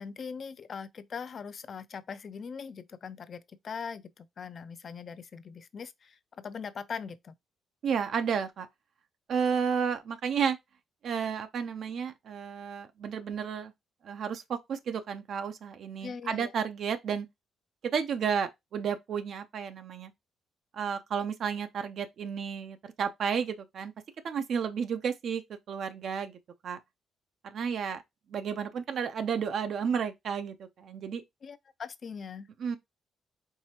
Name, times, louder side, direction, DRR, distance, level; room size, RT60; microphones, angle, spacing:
voice 1, 0.0-7.3 16.0-16.5 31.4-32.5, left 6 dB, 50° left, 0.5 m, -41 dB
voice 2, 7.8-8.7 9.3-10.6 11.0-13.7 14.0-17.3 17.9-20.1 20.7-23.9 24.2-26.4 26.6-26.8 27.4-28.0 28.3-31.2 32.6-32.8, right 7 dB, 65° right, 0.6 m, -32 dB
4.7 x 3.2 x 2.9 m
cardioid pair, 90°, 0 cm